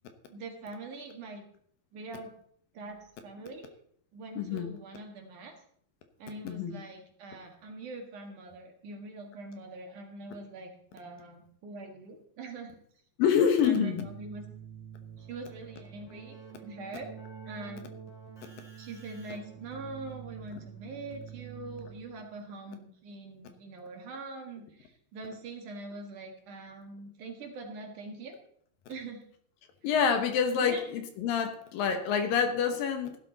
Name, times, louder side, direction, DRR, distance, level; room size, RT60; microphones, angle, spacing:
voice 1, 0.3-1.5 1.9-2.3 2.7-3.7 4.1-5.5 6.2-12.7 13.6-14.4 15.2-17.1 17.4-17.9 18.8-28.4 28.9-29.2 30.6-30.8, right 2 dB, 60° right, 3 dB, 2.9 m, -43 dB
voice 2, 4.4-4.7 6.4-6.8 13.2-14.0 29.8-33.2, left 7 dB, 70° left, 7 dB, 2.7 m, -27 dB
Keyboard (musical), 13.9-22.3, right 8 dB, 10° left, 2.5 m, -47 dB
15.5 x 11.5 x 4.0 m, 0.64 s
omnidirectional pair, 4.6 m